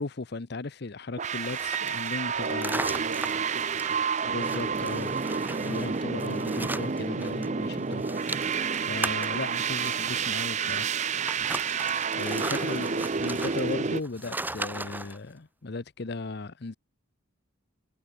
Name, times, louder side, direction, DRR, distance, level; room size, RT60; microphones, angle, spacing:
voice 1, 0.0-2.8 4.2-5.1 5.6-8.0 8.8-10.9 12.1-16.8, left 3 dB, 50° left, 0.7 m, -36 dB
sound 1, 1.2-14.0, right 5 dB, 35° right, 0.6 m, -29 dB
sound 2, 1.4-7.5 7.7-15.2, right 2 dB, 10° right, 2.5 m, -38 dB
voice 2, 2.3-4.0 4.4-5.0 12.1-12.3, right 2 dB, 60° right, 2.0 m, -43 dB
head